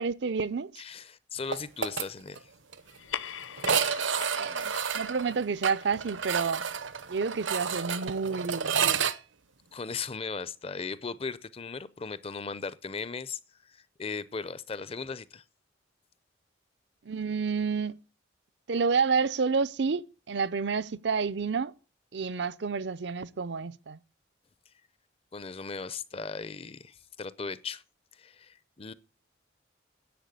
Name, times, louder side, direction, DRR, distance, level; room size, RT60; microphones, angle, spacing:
voice 1, 0.0-0.7 4.4-6.6 7.1-9.0 17.1-18.0 18.7-21.7 22.1-24.0, right 5 dB, 65° right, 0.6 m, -29 dB
voice 2, 0.8-2.5 9.7-15.4 25.3-27.8 28.1-28.9, left 5 dB, 30° left, 0.6 m, -37 dB
sound 1, 1.5-2.1 2.4-2.5 2.7-2.8 3.6-9.1, right 7 dB, 80° right, 0.9 m, -30 dB
sound 2, 2.9-7.7, left 8 dB, 90° left, 0.7 m, -43 dB
10.5 x 8.3 x 8.1 m
head